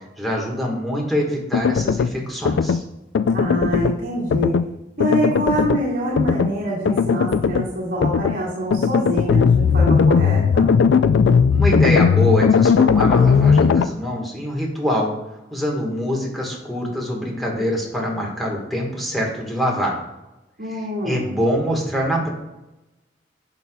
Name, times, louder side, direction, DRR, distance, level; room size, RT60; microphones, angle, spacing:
voice 1, 0.2-2.8 11.5-15.2 15.5-20.0 20.7-22.3, equal, ahead, -2 dB, 1.5 m, -24 dB
sound 1, 1.5-2.1 2.5-2.8 3.1-4.0 4.3-4.7 5.0-5.8 6.2-6.5 6.9-7.7 8.0-8.4 8.7-13.8, left 5 dB, 80° left, 0.3 m, -17 dB
voice 2, 3.3-4.5 5.0-10.8 20.6-21.4, equal, 55° right, -8 dB, 2.0 m, -25 dB
10.5 x 5.7 x 2.3 m, 0.97 s
head